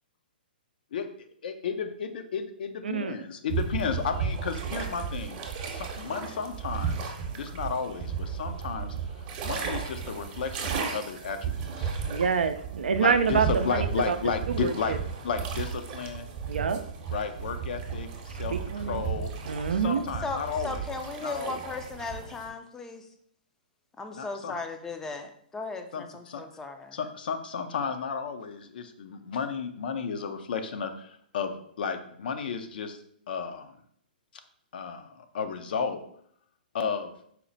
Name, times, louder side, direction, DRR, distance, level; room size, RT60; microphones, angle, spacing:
voice 1, 1.4-8.9 9.4-12.0 13.0-16.3 17.1-19.3 19.7-20.8 21.2-21.5 24.1-24.5 25.9-26.4 26.9-33.0 33.3-33.7 34.7-36.0 36.7-37.1, left 6 dB, 65° left, 8 dB, 0.5 m, -33 dB
sound 1, 3.5-22.5, right 6 dB, 35° right, 0.7 m, -34 dB
voice 2, 12.1-14.2 14.5-14.7 16.5-16.8 18.5-19.0 19.5-20.0, right 6 dB, 90° right, 9 dB, 0.4 m, -26 dB
voice 3, 19.9-23.1 24.0-27.0, left 3 dB, 10° left, 6 dB, 0.4 m, -37 dB
4.3 x 2.1 x 3.9 m, 0.65 s
hypercardioid pair, 140°, 5 cm